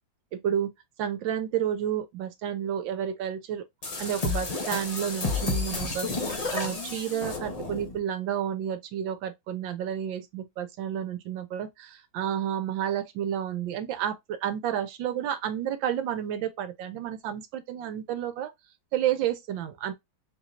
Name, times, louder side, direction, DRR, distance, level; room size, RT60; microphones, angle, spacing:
voice 1, 0.3-0.7 1.0-3.6 4.0-18.5 18.9-19.9, right 10 dB, 75° right, 1.4 m, -31 dB
sound 1, 3.8-8.0, left 3 dB, 75° left, 0.3 m, -31 dB
4.4 x 3.0 x 2.4 m
omnidirectional pair, 2.1 m